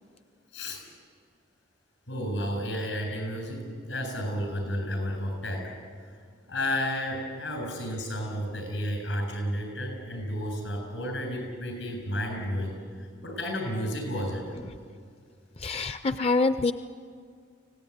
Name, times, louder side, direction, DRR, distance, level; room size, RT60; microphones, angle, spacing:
voice 1, 2.1-5.7 6.0-6.1 6.5-14.4, equal, 80° left, 4 dB, 7.6 m, -32 dB
voice 2, 15.6-16.7, left 3 dB, 35° left, 11 dB, 0.5 m, -25 dB
25.0 x 18.0 x 9.6 m, 2.1 s
head